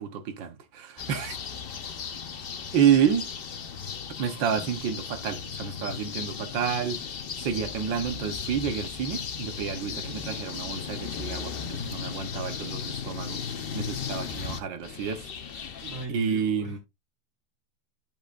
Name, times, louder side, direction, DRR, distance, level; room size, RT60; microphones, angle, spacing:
voice 1, 0.0-1.4 2.7-3.3 4.2-15.2 16.1-16.8, right 8 dB, 90° right, 1.8 m, -29 dB
sound 1, 1.0-16.1, left 6 dB, 45° left, 0.7 m, -36 dB
voice 2, 15.8-16.8, right 2 dB, 30° right, 4.6 m, -39 dB
11.0 x 7.1 x 2.5 m
omnidirectional pair, 2.0 m